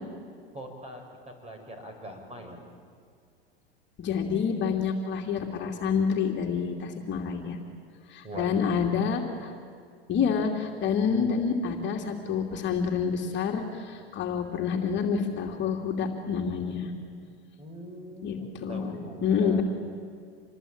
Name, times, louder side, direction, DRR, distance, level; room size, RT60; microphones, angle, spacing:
voice 1, 0.5-2.6 8.2-8.7 17.6-19.6, right 1 dB, 20° right, 4 dB, 6.1 m, -42 dB
voice 2, 4.0-7.6 8.1-9.5 10.1-16.9 18.2-19.6, left 6 dB, 35° left, 2 dB, 2.8 m, -28 dB
27.0 x 21.0 x 8.9 m, 2.1 s
hypercardioid pair, 95°, 31 cm